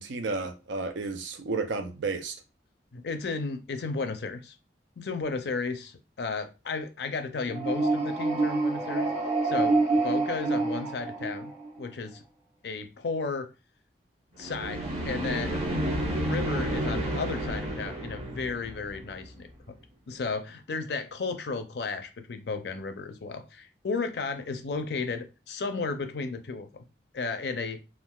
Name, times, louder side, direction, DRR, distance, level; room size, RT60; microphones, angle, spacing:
voice 1, 0.0-2.3, right 3 dB, 90° right, 7 dB, 0.5 m, -32 dB
voice 2, 2.9-4.5 5.0-9.1 9.4-12.2 12.6-13.5 14.4-15.6 16.2-19.5 20.1-26.8 27.1-27.8, left 4 dB, 65° left, 8 dB, 0.5 m, -34 dB
sound 1, 7.5-11.8 14.4-19.4, right 2 dB, 35° right, 0.9 m, -28 dB
3.5 x 2.3 x 2.3 m, 0.30 s
head